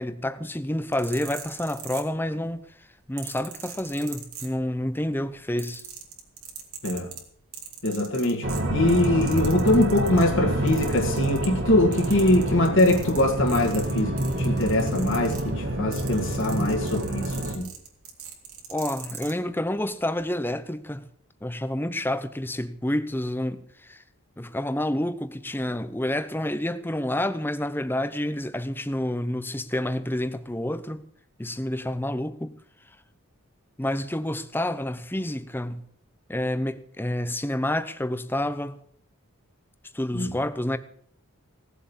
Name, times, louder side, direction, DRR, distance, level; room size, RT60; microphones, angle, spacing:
voice 1, 0.0-5.8 16.5-17.1 18.7-21.0 21.4-24.0 24.4-31.0 31.4-32.5 33.8-35.8 36.3-38.8 39.9-40.8, left 1 dB, 10° left, 0.7 m, -29 dB
sound 1, 0.8-2.5 3.2-4.9 5.2-10.3 10.7-11.7 11.9-19.4 20.1-20.3, right 9 dB, 85° right, 3.0 m, -41 dB
voice 2, 7.8-14.1 14.4-17.7 40.1-40.3, left 1 dB, 60° left, 1.8 m, -23 dB
sound 2, 8.4-17.5, right 1 dB, 55° right, 2.4 m, -28 dB
18.0 x 7.6 x 7.2 m
head